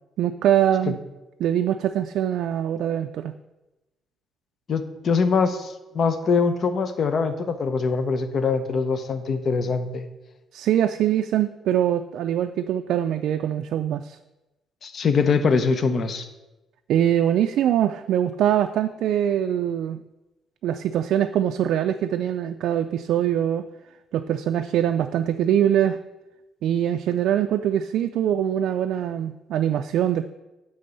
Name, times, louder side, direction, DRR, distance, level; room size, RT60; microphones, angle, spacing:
voice 1, 0.2-1.0 1.4-3.3 10.5-14.2 16.9-20.0 20.6-23.6 24.1-26.0 26.6-30.2, right 10 dB, 80° right, 7 dB, 0.3 m, -23 dB
voice 2, 4.7-10.1 14.8-16.2, left 5 dB, 55° left, 9 dB, 0.8 m, -23 dB
9.1 x 3.4 x 6.8 m, 1.0 s
cardioid pair, 90°, 0 cm